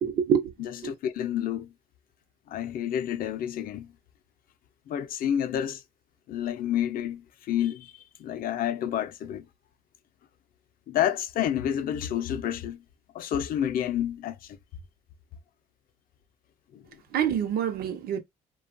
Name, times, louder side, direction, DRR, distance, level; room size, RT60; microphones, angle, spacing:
voice 1, 0.0-0.5 0.8-0.9 17.1-18.2, right 8 dB, 65° right, 0.7 m, -26 dB
voice 2, 0.6-1.7 2.5-3.9 4.9-5.8 6.3-9.5 10.9-12.8 13.1-14.6 16.7-16.8, left 10 dB, 60° left, 0.5 m, -29 dB
2.8 x 2.3 x 2.5 m
cardioid pair, 110°, 17 cm